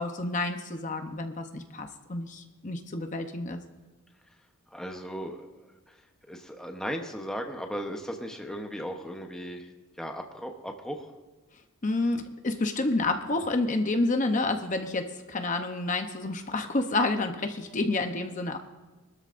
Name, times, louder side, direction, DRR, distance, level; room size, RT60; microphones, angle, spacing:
voice 1, 0.0-3.6 11.8-18.6, left 2 dB, 35° left, 6 dB, 0.8 m, -29 dB
voice 2, 4.7-5.4 5.9-6.0 6.3-9.7 10.0-11.1, equal, 5° left, 2 dB, 0.9 m, -36 dB
23.0 x 13.0 x 2.6 m, 1.2 s
head